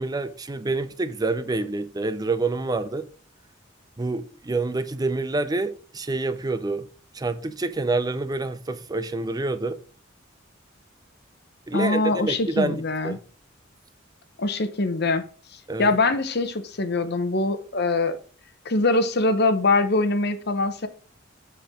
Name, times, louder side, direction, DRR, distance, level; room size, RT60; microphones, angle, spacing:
voice 1, 0.0-3.0 4.0-6.9 7.1-9.8 11.7-13.2 15.7-15.9, right 3 dB, 20° right, 0.5 m, -27 dB
voice 2, 11.7-13.2 14.4-15.2 15.8-18.2 18.6-20.9, left 2 dB, 55° left, 0.9 m, -23 dB
7.7 x 4.4 x 4.9 m
head